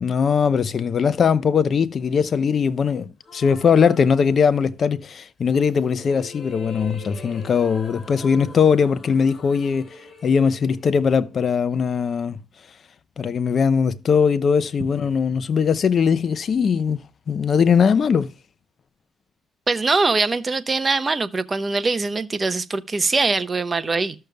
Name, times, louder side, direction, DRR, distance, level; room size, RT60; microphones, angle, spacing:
voice 1, 0.0-9.9 10.2-12.4 13.2-17.0 17.3-18.3, left 6 dB, 50° left, 0.7 m, -20 dB
sound 1, 3.2-4.9 5.7-11.8, left 3 dB, 30° left, 3.4 m, -43 dB
voice 2, 19.7-24.1, right 3 dB, 30° right, 0.8 m, -22 dB
14.0 x 6.6 x 2.2 m
cardioid pair, 90°, 0 cm